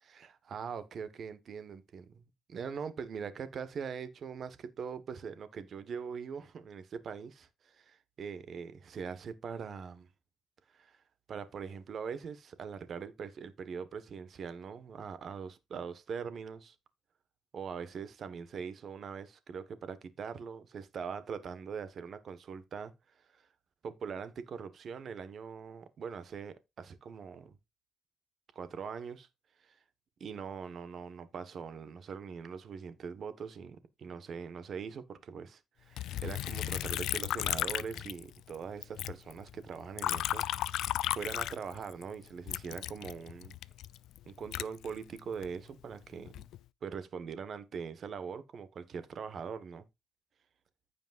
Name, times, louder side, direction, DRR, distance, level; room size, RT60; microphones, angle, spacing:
voice 1, 0.1-2.2 2.5-10.1 10.7-11.0 11.3-16.7 17.5-22.9 23.3-23.5 23.8-27.6 28.5-29.3 29.6-29.7 30.2-40.5 40.8-43.5 44.3-46.4 46.8-49.8, right 6 dB, 55° right, 1.4 m, -42 dB
Liquid, 36.0-38.6 38.8-42.0 42.5-45.5 46.1-46.6, left 13 dB, 80° left, 0.4 m, -35 dB
15.5 x 5.2 x 2.5 m
cardioid pair, 90°, 0 cm